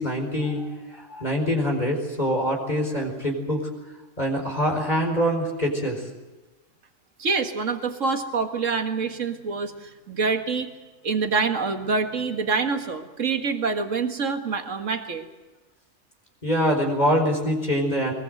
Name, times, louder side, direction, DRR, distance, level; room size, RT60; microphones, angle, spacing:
voice 1, 0.0-3.7 4.2-6.1 16.4-18.1, equal, 30° left, 2 dB, 4.7 m, -24 dB
voice 2, 7.2-10.7 11.0-15.2, right 4 dB, 65° right, 6 dB, 2.1 m, -26 dB
22.0 x 21.5 x 7.8 m, 1.2 s
omnidirectional pair, 1.4 m